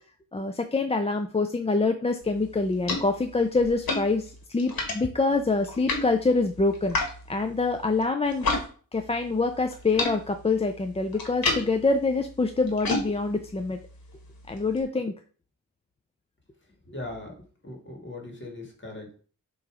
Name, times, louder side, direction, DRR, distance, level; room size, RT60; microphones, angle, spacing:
voice 1, 0.3-7.0 7.3-8.6 8.9-13.8 14.5-15.1, left 3 dB, 20° left, 6 dB, 0.4 m, -25 dB
sound 1, 2.2-8.7 8.9-14.8, left 3 dB, 85° left, 1.7 m, -34 dB
voice 2, 16.9-17.4 17.6-19.2, left 2 dB, 35° left, 1 dB, 2.0 m, -39 dB
6.6 x 3.1 x 4.8 m, 0.41 s
wide cardioid pair, 120°, 35 cm